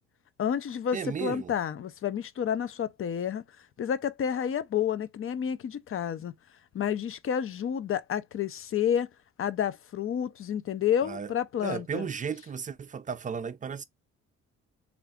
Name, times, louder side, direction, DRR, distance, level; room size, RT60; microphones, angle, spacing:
voice 1, 0.4-3.4 3.8-6.3 6.7-9.1 9.4-12.1, left 8 dB, 45° left, 0.6 m, -30 dB
voice 2, 0.9-1.5 11.0-11.3 11.6-13.8, right 6 dB, 25° right, 0.4 m, -34 dB
3.5 x 2.5 x 3.4 m
cardioid pair, 90°, 30 cm